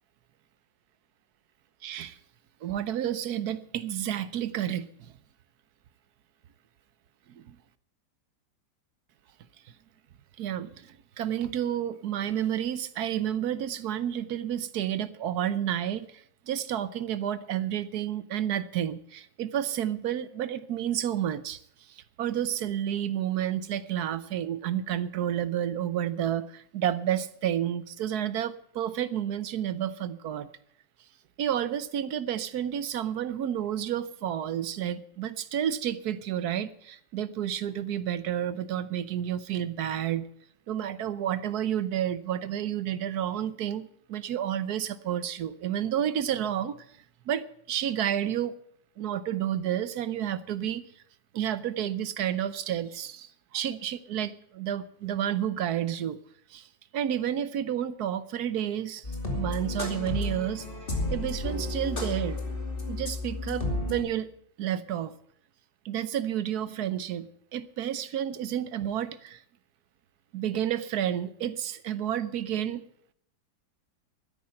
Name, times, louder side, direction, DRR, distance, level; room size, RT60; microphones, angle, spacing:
voice 1, 1.8-2.2 2.6-5.1 7.3-7.6 10.4-30.5 31.4-40.3 40.7-47.0 47.3-48.5 49.0-50.8 51.3-56.2 56.5-60.7 61.1-62.4 62.9-64.3 64.6-65.1 65.8-69.4 70.3-72.8, right 10 dB, 65° right, 1.1 m, -30 dB
sound 1, 59.0-64.0, left 2 dB, 25° left, 2.7 m, -32 dB
12.5 x 10.0 x 7.7 m
omnidirectional pair, 2.1 m